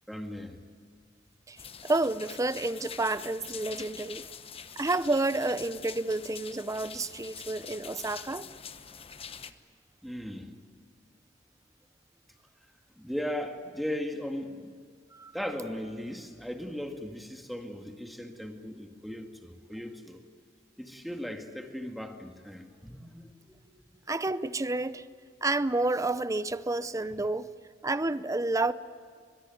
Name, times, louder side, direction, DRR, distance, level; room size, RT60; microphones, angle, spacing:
voice 1, 0.1-0.6 10.0-10.5 13.0-14.7 15.3-20.2 20.8-23.8, left 1 dB, ahead, 2.0 m, -38 dB
sound 1, 1.6-9.5, left 7 dB, 30° left, 0.9 m, -45 dB
voice 2, 1.8-4.2 4.8-8.5 15.1-15.3 24.1-25.0 25.4-27.5 27.8-28.7, right 2 dB, 15° right, 0.6 m, -30 dB
22.0 x 22.0 x 9.4 m
head